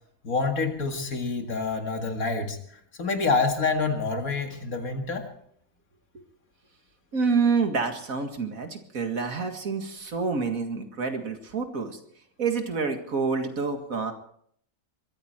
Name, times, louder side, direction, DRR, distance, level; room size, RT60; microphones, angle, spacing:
voice 1, 0.2-2.6 3.0-5.3, left 4 dB, 90° left, 5 dB, 2.5 m, -27 dB
voice 2, 7.1-12.0 12.4-14.1, right 5 dB, 75° right, 6 dB, 2.4 m, -27 dB
22.0 x 14.5 x 4.4 m, 0.65 s
omnidirectional pair, 1.4 m